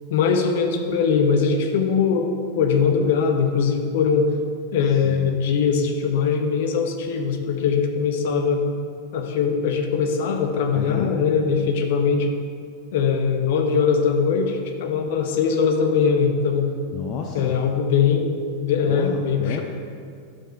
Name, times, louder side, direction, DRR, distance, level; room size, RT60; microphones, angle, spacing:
voice 1, 0.1-4.3 4.7-8.6 9.1-12.3 12.9-16.7 17.3-19.6, left 6 dB, 55° left, 4 dB, 1.1 m, -21 dB
voice 2, 10.7-11.1 16.9-17.6 18.9-19.6, left 7 dB, 40° left, 2 dB, 0.8 m, -31 dB
11.5 x 6.9 x 4.7 m, 2.2 s
figure-of-eight pair, 90°, 0 cm